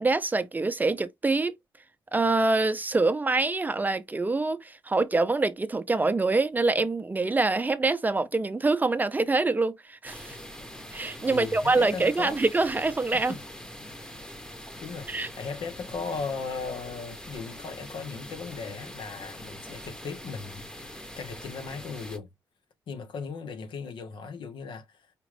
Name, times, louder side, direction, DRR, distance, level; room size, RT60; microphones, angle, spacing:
voice 1, 0.0-1.5 2.1-10.4 10.9-13.3 15.1-15.3, right 3 dB, 20° right, 0.6 m, -25 dB
sound 1, 10.0-22.2, equal, 10° left, 0.9 m, -43 dB
voice 2, 11.2-12.4 13.1-13.4 14.8-22.3 22.9-25.0, left 5 dB, 85° left, 1.1 m, -37 dB
5.1 x 2.4 x 3.3 m
cardioid pair, 105°, 8 cm